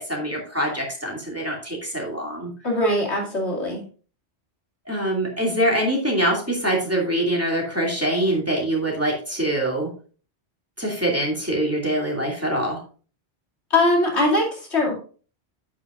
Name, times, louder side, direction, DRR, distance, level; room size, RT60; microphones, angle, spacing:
voice 1, 0.0-2.5 4.9-9.9 10.8-12.8, right 1 dB, 15° right, -2 dB, 2.6 m, -24 dB
voice 2, 2.6-3.8 13.7-14.9, left 1 dB, 85° left, -1 dB, 2.8 m, -21 dB
8.9 x 8.5 x 2.5 m, 0.39 s
omnidirectional pair, 1.1 m